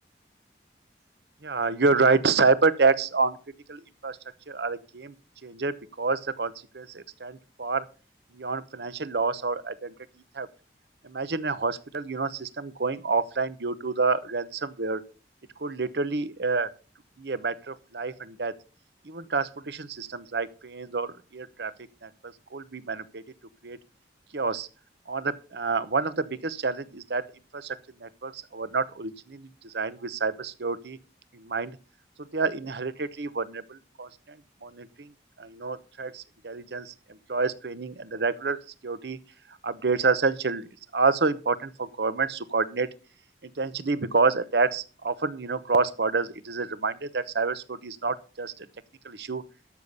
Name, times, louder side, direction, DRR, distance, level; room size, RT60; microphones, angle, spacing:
voice 1, 1.4-3.4 3.7-4.2 4.5-5.1 5.4-7.9 8.3-9.9 10.3-10.5 11.0-15.0 15.6-16.7 17.2-18.5 19.0-21.7 22.0-23.2 23.6-23.8 24.3-24.7 25.1-27.2 27.5-27.8 28.0-31.0 31.3-31.8 32.3-34.4 34.6-35.1 35.4-36.9 37.3-39.2 39.6-40.6 40.9-42.9 43.4-48.5 49.0-49.4, right 4 dB, 70° right, 0.9 m, -28 dB
13.0 x 6.9 x 5.4 m
head